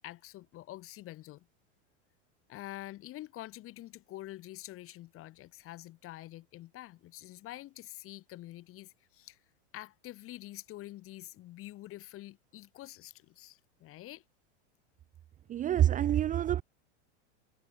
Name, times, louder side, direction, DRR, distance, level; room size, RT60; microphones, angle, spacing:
voice 1, 0.0-1.5 2.5-9.4 9.7-14.2, left 16 dB, 40° left, 5.2 m, -47 dB
voice 2, 15.5-16.6, right 11 dB, 20° right, 0.7 m, -27 dB
supercardioid pair, 135°, 35 cm